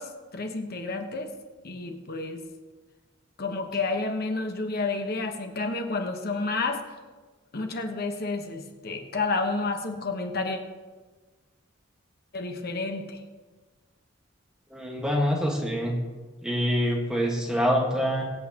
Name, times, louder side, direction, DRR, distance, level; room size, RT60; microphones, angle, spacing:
voice 1, 0.0-1.3 1.6-2.4 3.4-6.8 7.5-10.6 12.3-13.2, left 3 dB, 50° left, 5 dB, 1.1 m, -30 dB
voice 2, 14.7-16.0 16.4-18.2, equal, 5° right, -1 dB, 1.5 m, -25 dB
23.0 x 8.3 x 2.9 m, 1.3 s
head